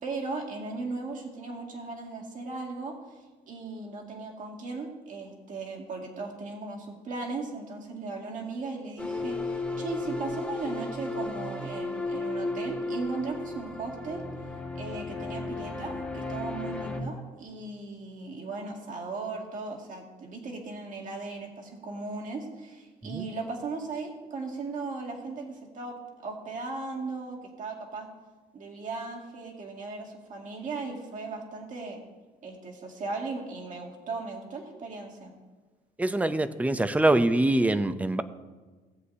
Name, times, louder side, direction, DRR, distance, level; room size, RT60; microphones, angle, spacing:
voice 1, 0.0-2.9 3.5-14.3 14.8-26.0 26.2-28.1 28.5-32.0 32.4-35.3, right 3 dB, 50° right, -1 dB, 2.2 m, -37 dB
sound 1, 9.0-17.0, left 2 dB, 5° left, 1.4 m, -34 dB
voice 2, 36.0-38.2, right 2 dB, 10° right, 11 dB, 0.6 m, -24 dB
18.0 x 8.0 x 2.8 m, 1.3 s
cardioid pair, 110°, 17 cm